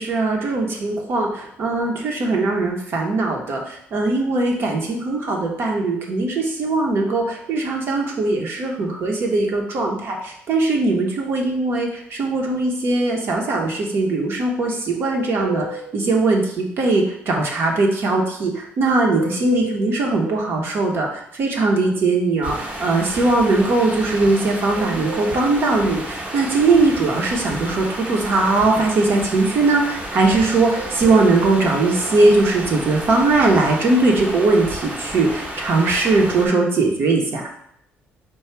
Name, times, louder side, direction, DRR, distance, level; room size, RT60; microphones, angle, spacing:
voice 1, 0.0-15.7 15.9-37.4, right 3 dB, 55° right, 0 dB, 1.0 m, -20 dB
sound 1, 15.1-16.5 19.1-20.5 24.7-26.1 30.7-32.1, right 2 dB, 80° right, 1.1 m, -35 dB
sound 2, 22.4-36.5, right 1 dB, 30° right, 0.9 m, -32 dB
4.7 x 2.3 x 4.5 m, 0.72 s
cardioid pair, 110°, 5 cm